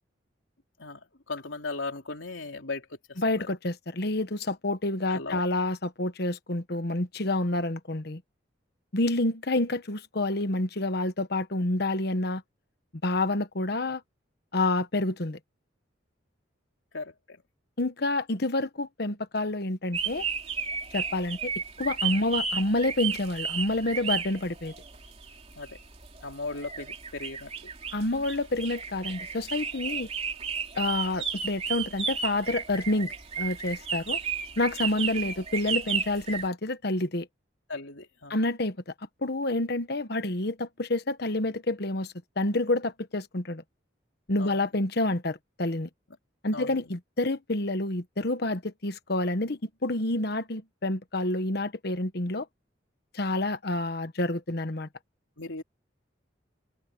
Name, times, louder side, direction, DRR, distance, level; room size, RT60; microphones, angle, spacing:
voice 1, 0.8-3.5 5.1-5.4 16.9-17.4 25.5-25.8 26.2-27.7 37.7-38.4 44.4-44.6 46.5-46.9 55.4-55.6, left 3 dB, 85° left, 3.5 m, -37 dB
voice 2, 3.2-8.2 8.9-12.4 13.0-14.0 14.5-15.4 17.8-20.2 20.9-21.5 21.8-24.7 27.9-30.1 30.7-33.1 33.4-34.2 34.6-37.3 38.3-38.8 39.2-43.6 44.3-45.9 46.4-52.5 53.1-54.9, left 2 dB, 55° left, 1.2 m, -28 dB
sound 1, 19.9-36.5, right 6 dB, 35° right, 2.9 m, -33 dB
head